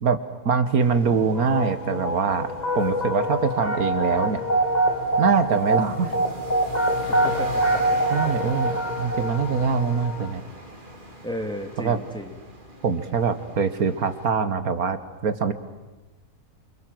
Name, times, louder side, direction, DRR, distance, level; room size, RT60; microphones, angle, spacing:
voice 1, 0.5-4.4 5.2-6.2 8.1-10.4 11.8-12.0 12.8-15.5, right 5 dB, 70° right, 10 dB, 1.8 m, -23 dB
sound 1, 0.8-14.3, equal, 30° right, 3.3 m, -41 dB
sound 2, 1.4-10.3, right 1 dB, 25° left, 2.3 m, -25 dB
voice 2, 7.1-8.0 11.2-12.4, equal, 5° left, 4 dB, 2.7 m, -34 dB
27.5 x 25.5 x 7.8 m, 1.2 s
omnidirectional pair, 1.6 m